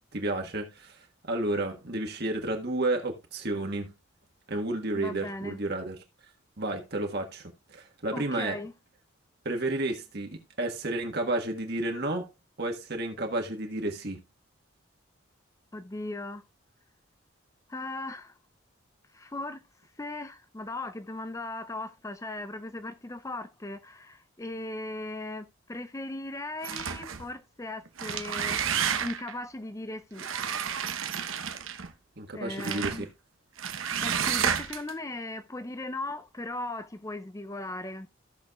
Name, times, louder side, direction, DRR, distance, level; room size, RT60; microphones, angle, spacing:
voice 1, 0.1-1.0 1.2-3.9 4.5-6.0 6.6-8.6 9.4-10.3 10.6-12.3 12.6-14.2 32.2-33.1, right 2 dB, 50° right, 1.5 m, -31 dB
voice 2, 4.9-5.6 8.1-8.7 15.7-16.4 17.7-18.3 19.1-19.6 20.0-30.3 32.3-33.1 34.0-38.1, left 2 dB, 15° left, 0.5 m, -38 dB
sound 1, 26.6-27.3 27.9-29.3 30.2-31.9 32.6-33.0 33.6-34.9, right 8 dB, 80° right, 1.0 m, -30 dB
15.5 x 6.3 x 2.4 m
head